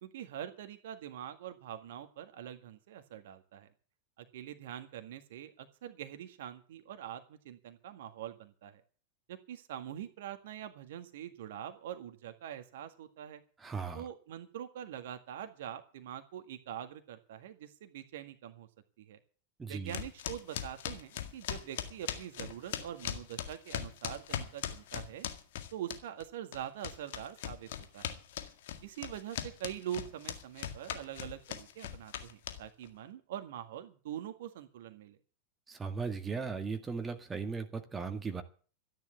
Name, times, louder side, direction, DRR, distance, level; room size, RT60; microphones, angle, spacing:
voice 1, 0.0-3.7 4.2-8.8 9.3-13.4 13.9-18.7 19.0-19.2 19.7-25.3 25.7-28.2 28.8-35.2, right 10 dB, 55° right, 8 dB, 1.7 m, -44 dB
voice 2, 13.6-14.0 19.6-19.9 35.7-38.4, right 5 dB, 15° right, 6 dB, 1.9 m, -37 dB
sound 1, 19.9-26.2 26.5-32.9, left 10 dB, 55° left, 1.9 m, -39 dB
13.0 x 10.5 x 8.1 m, 0.40 s
figure-of-eight pair, 90°, 0 cm